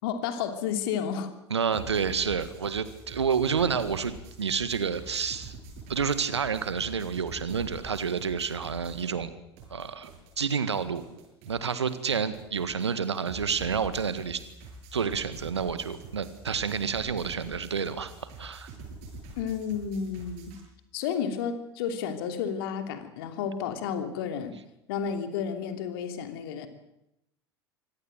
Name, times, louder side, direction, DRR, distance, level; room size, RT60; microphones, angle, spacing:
voice 1, 0.0-1.3 19.4-20.5 20.9-24.5 24.9-26.7, left 7 dB, 60° left, 7 dB, 2.9 m, -31 dB
voice 2, 1.5-5.5 5.9-9.3 9.7-11.0 11.4-14.4 14.9-18.1 18.4-18.7, right 6 dB, 80° right, 12 dB, 1.7 m, -29 dB
sound 1, 1.7-9.3 9.6-20.6, right 2 dB, 50° right, 7.8 m, -46 dB
25.0 x 17.5 x 7.8 m, 0.85 s
figure-of-eight pair, 80°, 14 cm